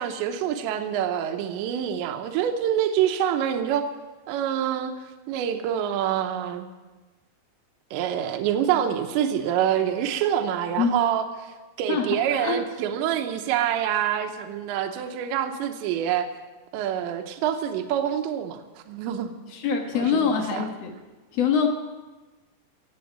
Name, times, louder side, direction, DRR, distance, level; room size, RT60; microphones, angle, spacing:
voice 1, 0.0-3.9 4.3-4.9 5.3-6.7 7.9-16.3 16.7-18.6 18.9-19.3 19.9-20.6, right 10 dB, 85° right, 6 dB, 3.1 m, -26 dB
voice 2, 11.9-12.6 19.5-20.9 21.3-21.7, left 6 dB, 90° left, 3 dB, 1.4 m, -24 dB
17.5 x 7.9 x 9.3 m, 1.2 s
omnidirectional pair, 5.1 m